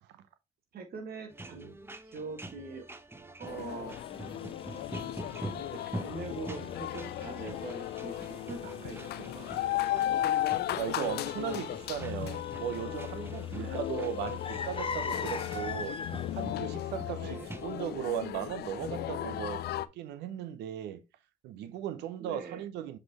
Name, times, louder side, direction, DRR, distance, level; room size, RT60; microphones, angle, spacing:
voice 1, 0.7-1.7 2.1-2.9 3.4-4.0 6.0-9.9 13.5-13.8 17.2-17.5 22.2-22.6, right 4 dB, 60° right, 1.8 m, -43 dB
sound 1, 1.3-17.9, right 1 dB, 15° right, 1.0 m, -46 dB
sound 2, 3.5-19.9, left 13 dB, 70° left, 0.5 m, -35 dB
sound 3, 3.9-16.5, left 5 dB, 30° left, 0.8 m, -44 dB
voice 2, 10.7-16.0 16.3-19.6 19.9-21.0 21.4-23.0, right 10 dB, 80° right, 0.7 m, -37 dB
7.4 x 4.3 x 2.9 m
supercardioid pair, 50°, 17 cm